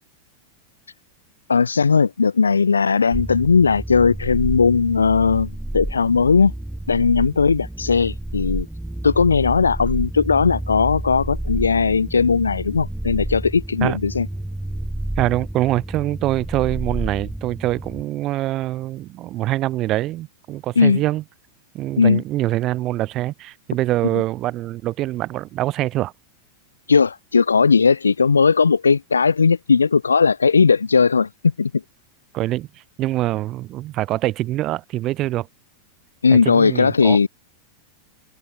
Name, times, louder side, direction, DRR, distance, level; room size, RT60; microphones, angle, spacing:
voice 1, 1.5-6.5 6.9-8.7 9.0-14.3 20.8-21.0 22.0-22.2 24.1-24.2 26.9-31.8 36.2-37.3, left 5 dB, 75° left, 0.4 m, -17 dB
sound 1, 3.1-18.0, right 1 dB, 5° right, 1.2 m, -30 dB
voice 2, 15.2-21.2 21.7-26.1 32.3-35.5 36.3-37.3, right 15 dB, 35° right, 0.4 m, -24 dB
open air
figure-of-eight pair, 90°, 0 cm